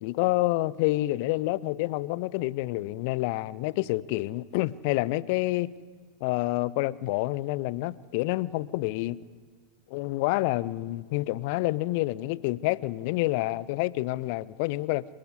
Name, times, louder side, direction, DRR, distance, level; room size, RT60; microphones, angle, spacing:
voice 1, 0.0-5.7 6.2-9.2 9.9-15.1, left 18 dB, 45° left, 0.6 m, -28 dB
28.0 x 11.5 x 9.6 m
figure-of-eight pair, 90°, 0 cm